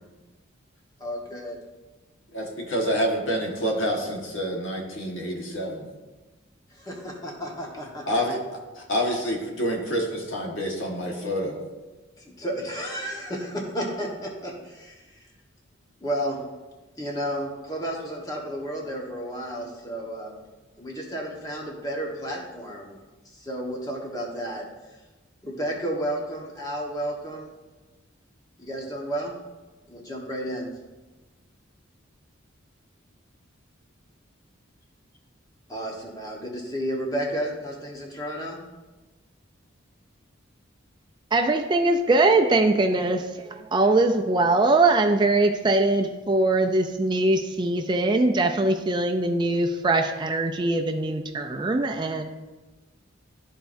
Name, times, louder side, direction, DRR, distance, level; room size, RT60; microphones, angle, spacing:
voice 1, 1.0-1.6 6.7-8.2 12.2-15.2 16.0-16.4 17.0-20.3 20.8-23.0 23.4-24.6 25.4-27.5 28.6-29.3 29.9-30.7 35.7-38.6, equal, 20° left, -1 dB, 1.2 m, -32 dB
voice 2, 2.3-5.8 8.1-8.4 8.7-11.6, equal, 75° left, 0 dB, 1.4 m, -27 dB
voice 3, 41.3-52.2, right 2 dB, 20° right, 4 dB, 0.4 m, -22 dB
13.0 x 4.5 x 2.6 m, 1.2 s
head